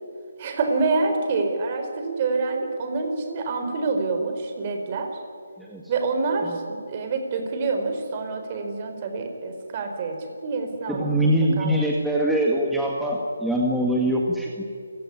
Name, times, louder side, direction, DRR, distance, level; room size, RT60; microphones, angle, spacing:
voice 1, 0.4-5.1 5.9-6.5 6.9-11.7, right 3 dB, 30° right, 5 dB, 4.3 m, -27 dB
voice 2, 5.6-5.9 6.4-6.6 10.9-14.6, right 1 dB, ahead, -3 dB, 1.9 m, -23 dB
28.5 x 16.5 x 9.8 m, 2.3 s
figure-of-eight pair, 160°, 0 cm